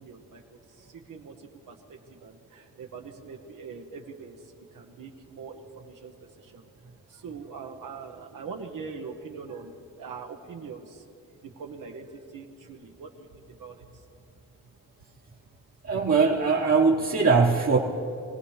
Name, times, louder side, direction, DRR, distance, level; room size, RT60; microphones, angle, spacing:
voice 1, 0.0-6.7 7.1-11.0 11.4-14.0, right 5 dB, 85° right, 2 dB, 1.0 m, -43 dB
voice 2, 15.8-17.8, right 4 dB, 55° right, -3 dB, 1.3 m, -21 dB
24.0 x 17.0 x 3.2 m, 2.6 s
cardioid pair, 70°, 32 cm